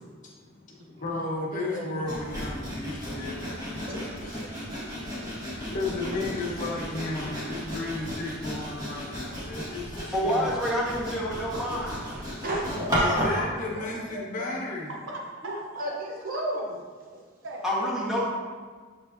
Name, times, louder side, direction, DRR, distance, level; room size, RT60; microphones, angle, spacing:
voice 1, 0.2-3.3 3.7-4.3 5.7-10.6 12.9-14.9, left 2 dB, 40° left, -3 dB, 1.1 m, -34 dB
voice 2, 0.8-2.2 4.2-5.7 12.2-12.9 14.9-16.0 16.3-16.4 17.4-17.8, right 1 dB, 70° right, 0 dB, 0.8 m, -42 dB
Sawing, 2.1-13.4, equal, 20° right, 1.7 m, -34 dB
voice 3, 3.9-4.4 5.2-5.3 6.1-6.5 12.1-14.6 15.4-15.5 15.8-17.2, right 1 dB, 45° right, -2 dB, 1.1 m, -34 dB
voice 4, 10.1-11.9 17.6-18.2, equal, 5° right, -7 dB, 1.5 m, -27 dB
7.0 x 5.2 x 2.8 m, 1.5 s
head